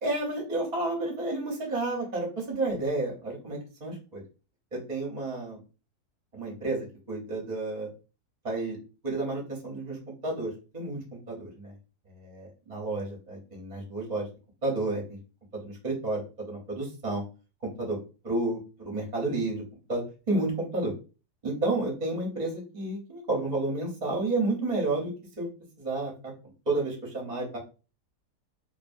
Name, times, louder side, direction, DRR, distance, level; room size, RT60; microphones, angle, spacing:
voice 1, 0.0-4.2 4.7-5.6 6.3-7.9 8.4-8.8 9.0-11.0 11.3-11.7 12.1-14.3 14.6-15.2 15.5-17.2 17.8-18.0 18.2-18.6 18.8-19.6 19.9-20.9 21.4-25.5 25.8-26.3 26.7-27.6, right 2 dB, 40° right, -2 dB, 0.6 m, -31 dB
2.5 x 2.5 x 2.5 m, 0.33 s
omnidirectional pair, 1.7 m